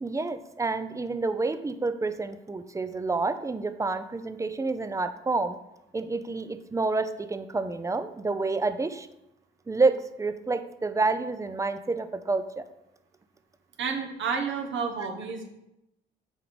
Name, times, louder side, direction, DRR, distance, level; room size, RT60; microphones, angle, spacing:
voice 1, 0.0-5.6 5.9-9.1 9.7-12.6, right 3 dB, 15° right, 10 dB, 0.6 m, -28 dB
voice 2, 13.8-15.5, right 5 dB, 70° right, 2 dB, 1.2 m, -30 dB
7.2 x 4.6 x 5.2 m, 0.89 s
cardioid pair, 90°, 20 cm